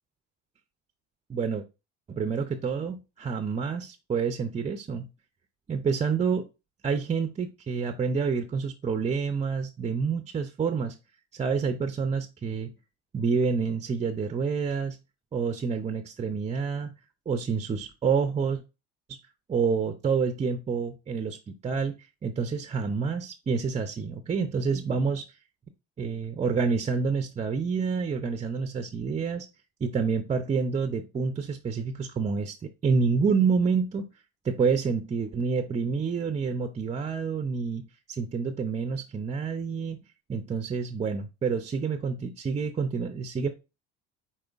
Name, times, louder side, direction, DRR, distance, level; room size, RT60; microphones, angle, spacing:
voice 1, 1.3-1.6 2.1-5.1 5.7-6.5 6.8-11.0 11.3-12.7 13.1-15.0 15.3-16.9 17.3-18.6 19.1-19.2 19.5-22.0 22.2-25.2 26.0-29.5 29.8-34.1 34.4-40.0 40.3-43.5, right 5 dB, 20° right, 8 dB, 0.5 m, -28 dB
4.9 x 4.3 x 2.4 m, 0.28 s
supercardioid pair, 80°, 32 cm